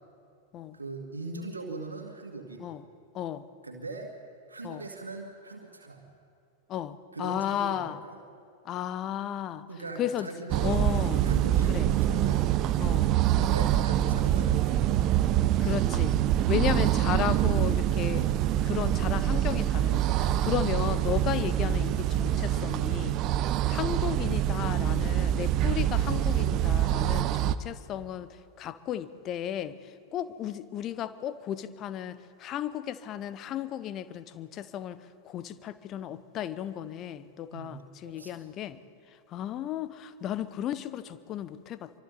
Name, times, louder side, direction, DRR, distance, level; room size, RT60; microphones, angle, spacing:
voice 1, 0.7-2.7 3.6-4.1 4.5-6.0 7.1-8.2 9.7-10.7 11.2-12.5 13.4-14.9 37.5-38.4, right 3 dB, 75° right, 2 dB, 2.2 m, -40 dB
voice 2, 3.1-3.5 4.6-4.9 6.7-8.0 8.6-9.6 10.0-10.3 10.6-11.3 11.7-11.9 12.8-13.2 15.6-16.2 16.5-18.3 18.6-23.2 23.6-28.3 28.6-35.0 35.2-38.8 39.3-42.0, left 11 dB, 35° left, 14 dB, 1.0 m, -34 dB
sound 1, 10.5-27.5, right 12 dB, 35° right, 0.8 m, -25 dB
27.0 x 24.0 x 4.2 m, 2.3 s
figure-of-eight pair, 90°, 0 cm